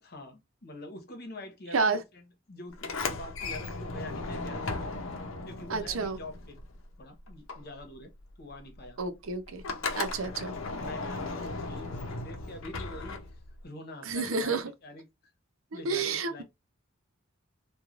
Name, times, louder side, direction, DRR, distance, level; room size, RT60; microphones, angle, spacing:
voice 1, 0.0-4.8 5.4-6.6 7.0-9.0 10.2-13.2 13.6-15.0 15.7-16.4, left 1 dB, 50° left, 0.9 m, -45 dB
Sliding door, 2.7-7.0 7.3-13.6, left 3 dB, 75° left, 0.6 m, -36 dB
voice 2, 5.7-6.2 9.0-9.6 10.0-10.5 14.0-14.7 15.7-16.4, right 4 dB, 90° right, 0.6 m, -30 dB
3.1 x 2.3 x 2.4 m
head